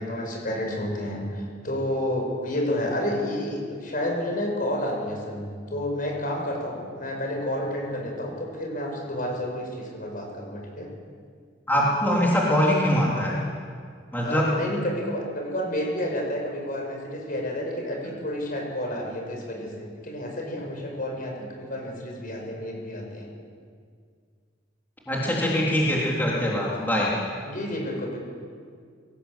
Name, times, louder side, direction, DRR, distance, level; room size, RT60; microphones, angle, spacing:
voice 1, 0.0-10.9 14.2-23.3 27.5-28.2, left 1 dB, 50° left, 1 dB, 6.2 m, -30 dB
voice 2, 11.7-13.4 14.1-14.5 25.1-27.1, equal, 10° left, -5 dB, 3.7 m, -23 dB
23.5 x 18.5 x 8.4 m, 2.1 s
head